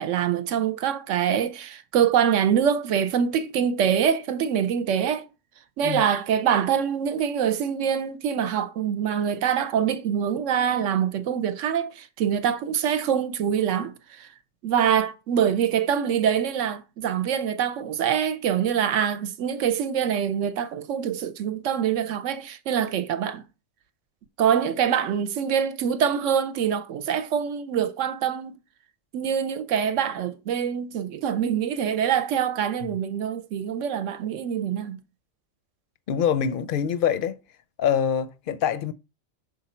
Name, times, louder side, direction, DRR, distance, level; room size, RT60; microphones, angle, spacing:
voice 1, 0.0-5.3 5.8-14.3 14.6-23.4 24.4-28.6 29.1-35.0, right 8 dB, 75° right, 1.0 m, -24 dB
voice 2, 36.1-37.4 37.8-38.9, left 8 dB, 60° left, 0.6 m, -24 dB
6.0 x 3.9 x 4.3 m
omnidirectional pair, 1.3 m